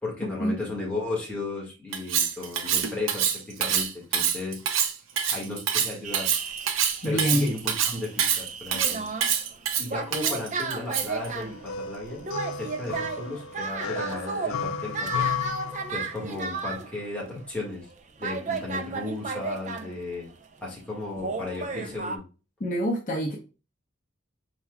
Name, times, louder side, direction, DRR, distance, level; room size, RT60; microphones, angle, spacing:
voice 1, 0.0-4.6 5.3-6.3 7.0-9.1 9.8-12.3 12.5-15.3 15.9-17.9 18.2-20.3 20.6-22.2, left 2 dB, 5° left, -4 dB, 1.6 m, -35 dB
Cutlery silverware, 1.9-11.3, right 8 dB, 75° right, 0.6 m, -26 dB
sound 1, 6.0-17.0 17.4-17.5 17.9-18.0 18.2-20.5 21.2-22.2, right 4 dB, 35° right, 0.4 m, -34 dB
voice 2, 7.0-7.5 22.6-23.3, equal, 40° left, -1 dB, 0.8 m, -26 dB
sound 2, 11.2-16.4, left 6 dB, 80° left, 0.4 m, -33 dB
4.6 x 4.3 x 2.2 m, 0.33 s
head